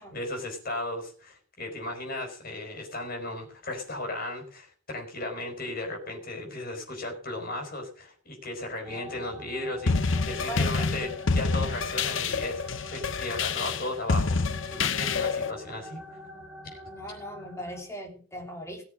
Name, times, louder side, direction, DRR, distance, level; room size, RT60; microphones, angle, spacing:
voice 1, 0.1-12.6 12.9-14.4 14.7-16.0, left 2 dB, 50° left, 2 dB, 4.7 m, -35 dB
sound 1, 8.8-17.8, equal, 5° right, 3.9 m, -47 dB
sound 2, 9.9-15.5, left 4 dB, 70° left, 0.8 m, -27 dB
voice 2, 10.2-10.9 16.9-18.8, equal, 15° left, 2 dB, 3.3 m, -39 dB
19.0 x 7.1 x 6.2 m, 0.43 s
head